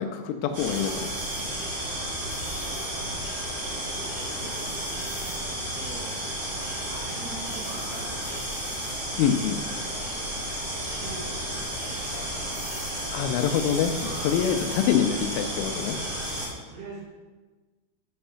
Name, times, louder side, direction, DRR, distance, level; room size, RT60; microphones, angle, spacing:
voice 1, 0.0-1.7 9.2-9.6 13.1-16.0, left 8 dB, 85° left, 5 dB, 3.0 m, -26 dB
sound 1, 0.5-16.5, right 1 dB, 55° right, 1.6 m, -32 dB
voice 2, 1.4-3.2 4.4-4.5 5.7-6.2 6.9-8.3 9.7-10.0 11.0-12.4 16.3-17.1, right 3 dB, 80° right, -5 dB, 4.3 m, -44 dB
9.6 x 3.5 x 5.5 m, 1.3 s
omnidirectional pair, 5.6 m